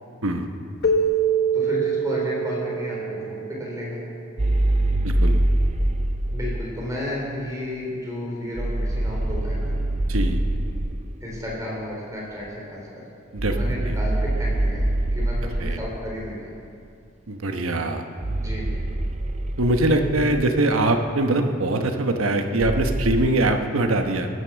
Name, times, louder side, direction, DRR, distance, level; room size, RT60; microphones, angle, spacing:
Keyboard (musical), 0.8-4.0, right 5 dB, 50° left, 1.1 m, -24 dB
voice 1, 1.5-4.0 6.3-9.7 11.2-13.0 13.5-14.9 15.1-16.5 18.4-18.7, left 1 dB, 15° right, -4 dB, 3.9 m, -32 dB
sound 1, 4.4-6.7 8.6-11.1 13.4-16.0 18.2-20.8 22.6-23.3, right 1 dB, 30° right, 0.6 m, -24 dB
voice 2, 5.0-5.4 10.1-10.4 13.3-13.6 13.9-14.0 15.6-15.8 17.3-18.0 19.6-24.3, right 2 dB, 80° right, 5 dB, 1.1 m, -22 dB
17.0 x 9.7 x 7.0 m, 2.4 s
head